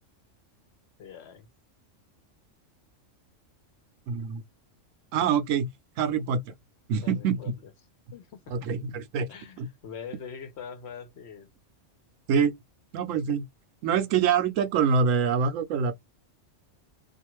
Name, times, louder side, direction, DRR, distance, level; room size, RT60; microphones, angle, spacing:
voice 1, 1.0-1.5 7.0-7.7 8.1-8.7 9.3-11.5, left 7 dB, 65° left, 0.9 m, -43 dB
voice 2, 4.1-4.4 5.1-5.7 6.0-6.4 6.9-7.4 8.5-9.3 9.6-9.7 12.3-12.5 12.9-13.4 13.8-16.0, right 6 dB, 80° right, 1.0 m, -25 dB
2.5 x 2.4 x 2.9 m
omnidirectional pair, 1.3 m